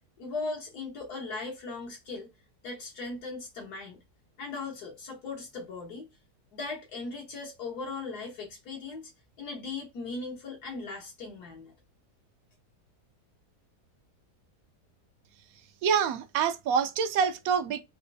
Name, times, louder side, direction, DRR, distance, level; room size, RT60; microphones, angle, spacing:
voice 1, 0.2-2.3 2.6-4.0 4.4-6.1 6.5-9.1 9.4-11.7, left 3 dB, 75° left, 1.5 m, -38 dB
voice 2, 15.8-17.8, right 7 dB, 70° right, 1.0 m, -26 dB
4.2 x 2.4 x 2.6 m
omnidirectional pair, 1.7 m